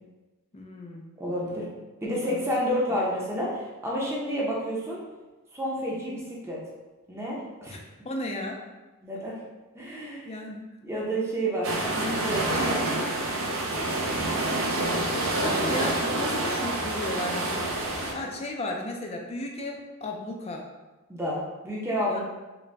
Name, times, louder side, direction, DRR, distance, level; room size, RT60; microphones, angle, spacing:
voice 1, 0.5-1.1 1.5-1.7 2.2-2.4 7.7-8.6 10.2-10.6 15.1-20.7 22.1-22.2, left 1 dB, 25° left, 1 dB, 0.4 m, -35 dB
voice 2, 1.2-1.6 2.0-5.0 5.5-6.6 7.1-7.8 9.0-9.3 9.7-10.3 10.8-13.2 21.1-22.2, equal, 10° right, -5 dB, 0.7 m, -30 dB
sound 1, 11.6-18.1, right 2 dB, 65° right, 0.7 m, -27 dB
4.0 x 2.1 x 3.3 m, 1.1 s
head